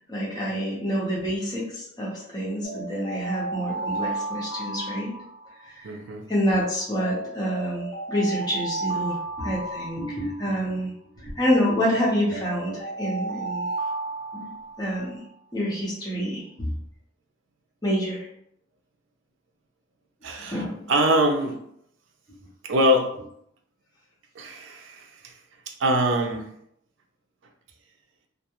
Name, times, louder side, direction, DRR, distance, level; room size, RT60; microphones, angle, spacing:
voice 1, 0.1-5.1 5.7-6.0 6.3-13.7 14.3-14.5 14.8-15.2 15.5-16.7 17.8-18.3 20.5-20.9, equal, 20° left, -5 dB, 0.7 m, -27 dB
sound 1, 2.6-5.8 6.9-10.7 11.8-15.0, right 3 dB, 40° left, 1.0 m, -33 dB
voice 2, 5.8-6.2 20.2-21.6 22.6-23.1 24.4-25.3 25.8-26.4, equal, 85° right, 3 dB, 0.4 m, -24 dB
2.3 x 2.3 x 2.9 m, 0.72 s
head